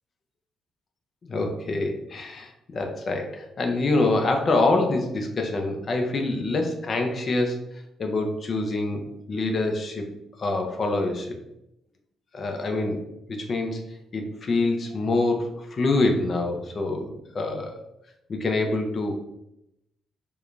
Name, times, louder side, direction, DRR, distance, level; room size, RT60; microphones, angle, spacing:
voice 1, 1.3-7.6 8.0-10.1 10.4-11.4 12.3-13.0 13.3-13.8 14.1-17.8 18.3-19.1, left 2 dB, 45° left, 3 dB, 0.6 m, -25 dB
4.6 x 2.3 x 2.5 m, 0.85 s
cardioid pair, 90°, 0 cm